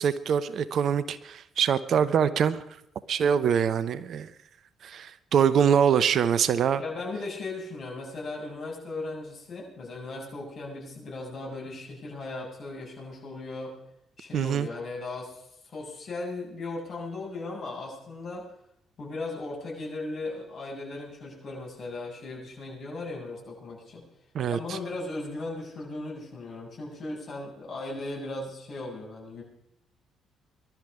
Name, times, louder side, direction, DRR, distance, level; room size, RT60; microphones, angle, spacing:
voice 1, 0.0-2.6 3.1-4.3 4.8-6.8 14.3-14.7 24.3-24.8, right 8 dB, 60° right, 16 dB, 0.9 m, -24 dB
voice 2, 6.8-13.8 14.2-18.5 19.0-24.0 24.5-29.4, left 2 dB, 50° left, -2 dB, 7.6 m, -37 dB
21.0 x 12.5 x 5.0 m, 0.77 s
hypercardioid pair, 50°, 0 cm